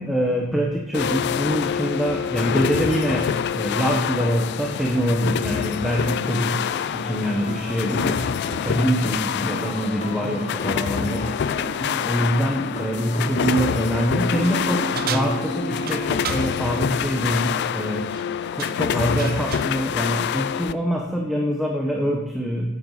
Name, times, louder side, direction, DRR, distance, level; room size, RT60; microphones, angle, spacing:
voice 1, 0.0-6.7 6.9-8.3 8.6-18.1 18.5-22.8, equal, ahead, -1 dB, 0.9 m, -25 dB
sound 1, 0.9-20.7, left 8 dB, 55° left, 0.3 m, -26 dB
sound 2, 5.6-16.2, equal, 35° left, 0.9 m, -33 dB
sound 3, 14.9-16.5 18.0-18.3 18.6-19.7, right 8 dB, 45° right, 0.6 m, -33 dB
9.3 x 7.7 x 3.9 m, 0.94 s
head